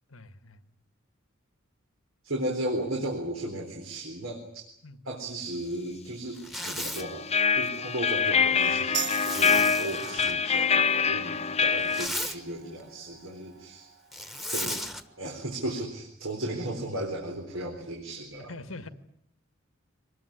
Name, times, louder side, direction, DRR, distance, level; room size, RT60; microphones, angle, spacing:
voice 1, 0.1-0.6 4.8-5.0 18.5-18.9, left 2 dB, 85° left, 11 dB, 1.8 m, -43 dB
voice 2, 2.2-4.7 5.0-13.9 14.5-14.7 15.2-18.5, right 1 dB, 85° right, 1 dB, 4.0 m, -35 dB
Zipper (clothing), 6.4-7.1 9.0-10.3 11.7-12.4 14.1-15.0, left 1 dB, ahead, 1.4 m, -35 dB
sound 1, 7.0-12.1, left 5 dB, 30° left, 1.0 m, -25 dB
sound 2, 8.9-16.0, right 8 dB, 60° right, 1.3 m, -42 dB
25.0 x 20.0 x 10.0 m, 0.75 s
head